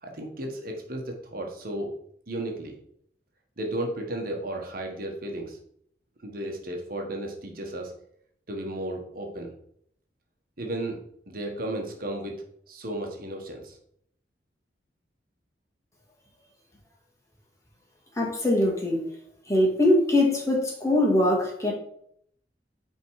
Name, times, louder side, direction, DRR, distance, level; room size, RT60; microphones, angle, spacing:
voice 1, 0.0-1.9 2.3-2.8 3.6-5.6 6.2-7.9 8.5-9.5 10.6-11.0 11.3-12.3 12.7-13.8, right 1 dB, 55° right, 2 dB, 1.4 m, -34 dB
voice 2, 18.2-19.1 19.5-21.7, left 1 dB, 20° left, -2 dB, 2.0 m, -22 dB
9.1 x 3.7 x 4.7 m, 0.68 s
head